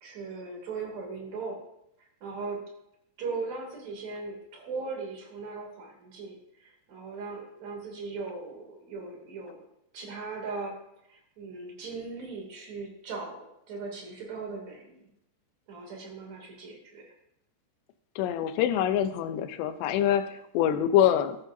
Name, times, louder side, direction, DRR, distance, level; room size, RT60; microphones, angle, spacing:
voice 1, 0.0-1.6 2.2-2.6 3.2-6.4 6.6-9.6 9.9-10.8 11.1-13.4 13.7-15.1 15.7-17.1, right 4 dB, 45° right, -1 dB, 3.7 m, -38 dB
voice 2, 18.2-21.4, left 10 dB, 90° left, 11 dB, 2.9 m, -25 dB
13.5 x 11.0 x 2.7 m, 0.80 s
omnidirectional pair, 4.8 m